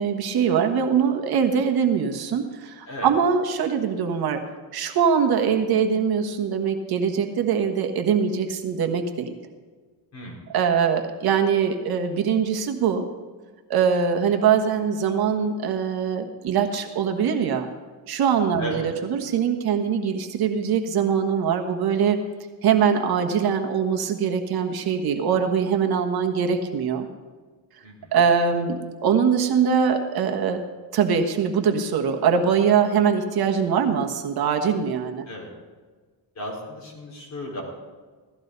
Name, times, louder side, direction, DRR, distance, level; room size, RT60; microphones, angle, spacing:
voice 1, 0.0-4.4 4.7-9.3 10.5-13.1 13.7-17.7 18.1-22.2 22.6-27.1 28.1-30.6 30.9-35.3, right 7 dB, 60° right, 4 dB, 1.4 m, -22 dB
voice 2, 10.1-10.4 18.6-18.9 27.8-28.2 35.3-35.5 36.3-37.6, equal, 40° left, -2 dB, 4.5 m, -35 dB
16.5 x 14.0 x 4.0 m, 1.4 s
cardioid pair, 145°, 42 cm